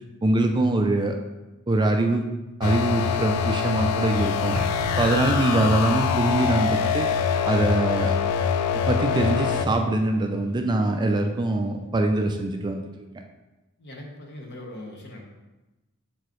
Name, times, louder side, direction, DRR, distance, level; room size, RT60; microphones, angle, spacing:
voice 1, 0.2-1.1 1.7-2.2 2.6-7.1 7.5-8.1 8.9-12.8, right 2 dB, 20° right, 4 dB, 0.3 m, -23 dB
sound 1, 2.6-9.7, left 7 dB, 90° left, 0.4 m, -24 dB
Explosion, 4.5-6.2, right 2 dB, 85° right, 0.5 m, -36 dB
voice 2, 13.8-15.2, left 1 dB, 50° left, 1 dB, 1.1 m, -40 dB
6.9 x 4.7 x 3.0 m, 1.1 s
head